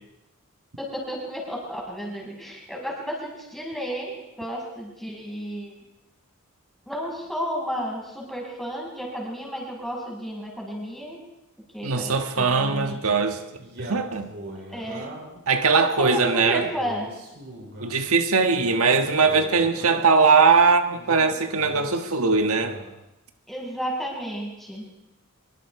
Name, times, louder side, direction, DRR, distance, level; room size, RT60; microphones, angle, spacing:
voice 1, 0.8-5.7 6.9-11.2 11.7-13.2 14.7-15.2 15.5-17.1 23.5-24.9, equal, ahead, -2 dB, 6.5 m, -32 dB
voice 2, 11.8-13.4 13.8-14.3 15.5-16.7 17.8-22.8, right 4 dB, 80° right, 6 dB, 1.5 m, -20 dB
Male speech man speaking, 13.6-15.4 16.0-18.0 18.5-20.2 20.9-22.9, right 1 dB, 50° right, 6.6 m, -40 dB
25.0 x 23.5 x 4.8 m, 0.93 s
head